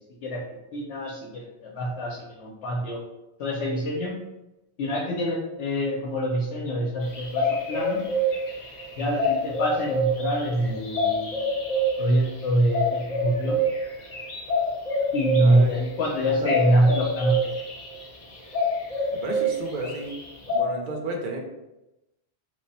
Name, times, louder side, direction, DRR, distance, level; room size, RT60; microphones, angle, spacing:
voice 1, 0.7-3.0 3.4-4.1 4.8-8.0 9.0-11.3 12.0-13.6 15.1-17.4, equal, 75° left, -3 dB, 0.9 m, -25 dB
sound 1, 7.0-20.6, equal, 45° left, 0.7 m, -27 dB
voice 2, 15.4-15.8 16.3-16.5 19.1-20.1 20.5-21.4, right 2 dB, 55° right, 2 dB, 0.7 m, -32 dB
3.2 x 2.1 x 4.0 m, 0.95 s
omnidirectional pair, 1.1 m